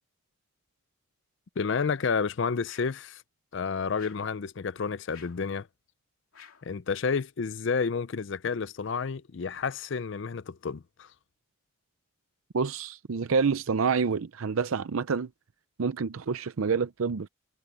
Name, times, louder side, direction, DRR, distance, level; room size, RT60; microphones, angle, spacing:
voice 1, 1.6-3.2 3.5-5.7 6.6-11.1, left 5 dB, 55° left, 0.5 m, -30 dB
sound 1, 2.6-3.1 3.9-4.4 5.1-5.5 6.3-6.7, left 8 dB, 85° left, 2.8 m, -52 dB
voice 2, 12.5-15.3 15.8-17.3, right 5 dB, 75° right, 0.5 m, -27 dB
head